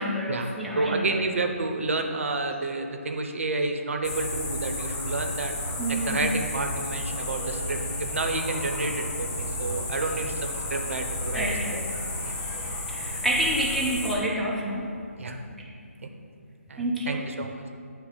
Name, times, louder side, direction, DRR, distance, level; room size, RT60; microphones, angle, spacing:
voice 1, 0.0-1.2 5.8-6.2 11.3-11.8 12.9-14.9 16.8-17.3, right 1 dB, ahead, -6 dB, 0.5 m, -28 dB
voice 2, 0.8-5.5 5.9-11.5 11.7-11.8 12.2-12.4 15.2-15.4 16.0-16.1 16.7-17.6, right 3 dB, 60° right, 5 dB, 0.7 m, -30 dB
sound 1, 4.0-14.2, left 2 dB, 30° left, 1.1 m, -32 dB
9.2 x 3.2 x 4.8 m, 2.3 s
figure-of-eight pair, 150°, 8 cm